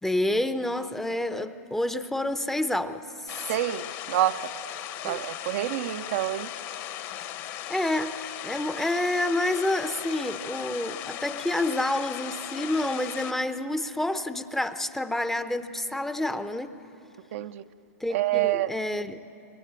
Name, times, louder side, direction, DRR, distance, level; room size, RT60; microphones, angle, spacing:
voice 1, 0.0-3.4 5.0-5.2 7.7-16.7 18.0-19.2, left 1 dB, 5° left, 11 dB, 0.7 m, -28 dB
sound 1, 3.3-13.3, left 12 dB, 40° left, 1.2 m, -37 dB
voice 2, 3.5-4.5 5.0-6.5 17.3-17.6 18.1-18.7, right 13 dB, 55° right, 10 dB, 0.6 m, -27 dB
25.5 x 20.5 x 8.8 m, 3.0 s
hypercardioid pair, 125°, 9 cm